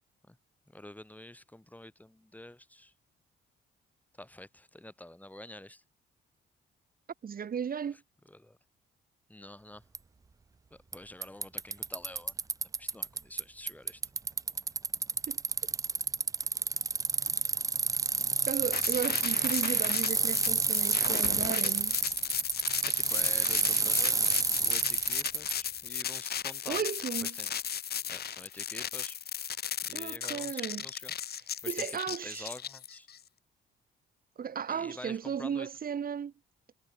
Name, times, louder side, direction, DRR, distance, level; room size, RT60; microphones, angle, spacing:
voice 1, 0.7-2.9 4.1-5.8 7.9-8.0 8.3-8.6 9.3-9.8 10.7-12.5 12.8-14.0 22.8-26.8 27.2-27.5 28.1-29.2 29.8-31.1 31.6-33.1 34.7-35.7, left 1 dB, 10° left, 7.2 m, -48 dB
voice 2, 7.2-8.0 15.3-15.4 18.5-22.0 26.7-27.3 29.9-30.9 31.7-32.5 34.4-36.3, right 7 dB, 45° right, 2.0 m, -35 dB
Bicycle, 9.9-10.0 10.9-11.0 11.2-13.4 13.7-25.5, right 4 dB, 15° right, 0.4 m, -29 dB
sound 1, 18.7-33.2, left 9 dB, 55° left, 1.3 m, -36 dB
cardioid pair, 90°, 20 cm